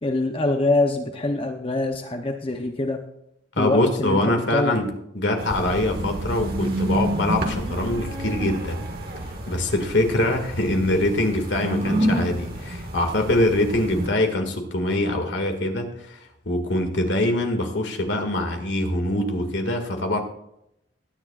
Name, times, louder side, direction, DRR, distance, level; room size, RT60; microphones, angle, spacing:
voice 1, 0.0-3.0 3.6-4.7, left 2 dB, 30° left, 4 dB, 0.7 m, -24 dB
voice 2, 3.5-4.9 5.1-8.9 9.5-20.2, left 1 dB, 70° left, 4 dB, 2.0 m, -24 dB
sound 1, 5.4-14.1, right 1 dB, 50° right, 1.8 m, -28 dB
20.0 x 10.0 x 2.4 m, 0.79 s
head